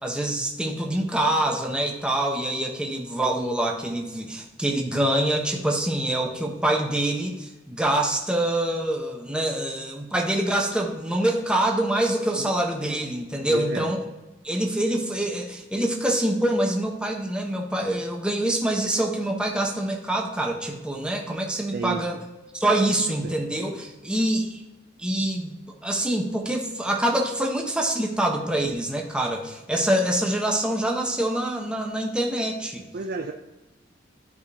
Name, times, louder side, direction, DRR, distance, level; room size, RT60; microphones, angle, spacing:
voice 1, 0.0-14.0 14.4-22.2 22.6-24.6 25.0-25.5 25.8-32.8, right 1 dB, 5° right, 1 dB, 1.0 m, -25 dB
voice 2, 13.5-13.9 21.7-22.0 23.2-23.3 32.9-33.3, right 4 dB, 55° right, 4 dB, 0.5 m, -31 dB
13.0 x 5.1 x 2.8 m, 1.0 s
head